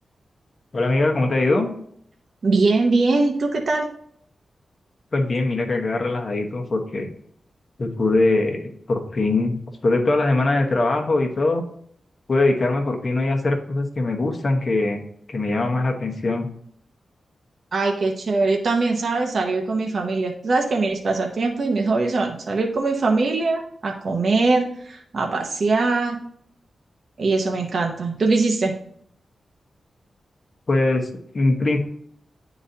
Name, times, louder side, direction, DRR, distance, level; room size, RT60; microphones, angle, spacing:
voice 1, 0.7-1.7 5.1-7.1 7.8-9.6 9.8-11.6 12.3-15.0 15.3-16.5 30.7-31.1 31.3-31.8, left 2 dB, 40° left, 2 dB, 1.1 m, -21 dB
voice 2, 2.4-3.9 17.7-26.2 27.2-28.7, right 3 dB, 55° right, 1 dB, 0.7 m, -22 dB
9.4 x 3.9 x 2.7 m, 0.66 s
wide cardioid pair, 105°, 0 cm